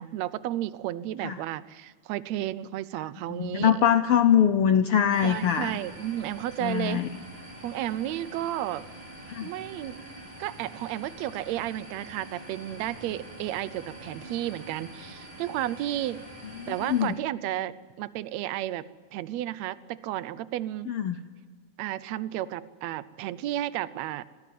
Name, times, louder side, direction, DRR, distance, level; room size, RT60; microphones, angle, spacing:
voice 1, 0.0-4.0 5.2-7.0 7.6-8.8 9.4-10.0 10.4-16.2 16.7-20.9 21.8-24.2, right 13 dB, 75° right, 16 dB, 1.9 m, -32 dB
voice 2, 3.4-5.7 6.6-7.1 9.3-9.5 16.9-17.1 20.9-21.2, left 9 dB, 80° left, 10 dB, 1.2 m, -22 dB
sound 1, 5.1-17.1, right 1 dB, 90° right, 6.4 m, -45 dB
21.0 x 17.0 x 9.4 m, 1.5 s
omnidirectional pair, 3.4 m